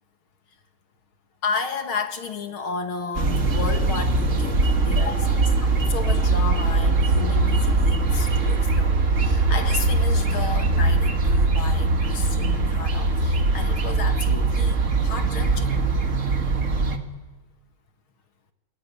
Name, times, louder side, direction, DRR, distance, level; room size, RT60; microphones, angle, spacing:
voice 1, 1.4-15.8, left 5 dB, 45° left, 7 dB, 2.5 m, -33 dB
sound 1, 3.1-17.0, right 3 dB, 30° right, 1.7 m, -21 dB
28.5 x 21.5 x 9.8 m, 1.2 s
omnidirectional pair, 3.3 m